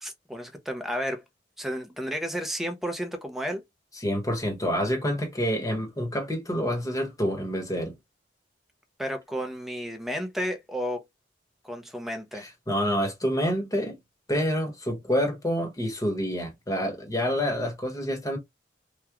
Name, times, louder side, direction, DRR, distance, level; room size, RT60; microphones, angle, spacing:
voice 1, 0.0-1.2 1.6-3.6 9.0-11.0 11.6-12.4, equal, ahead, 0.6 m, -32 dB
voice 2, 4.0-8.0 12.3-14.0 14.3-18.4, equal, 20° left, 1.1 m, -27 dB
3.6 x 2.3 x 2.9 m
head